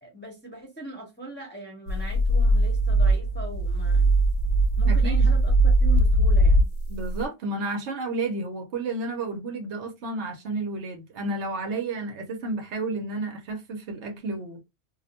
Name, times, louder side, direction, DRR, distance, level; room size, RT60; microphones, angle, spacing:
voice 1, 0.0-4.1 4.8-6.7, right 3 dB, 10° left, 0.8 m, -40 dB
sound 1, 1.9-7.2, right 1 dB, 85° left, 1.0 m, -20 dB
voice 2, 4.9-5.3 6.9-14.6, right 2 dB, 65° right, 1.0 m, -31 dB
2.6 x 2.1 x 2.8 m
omnidirectional pair, 1.3 m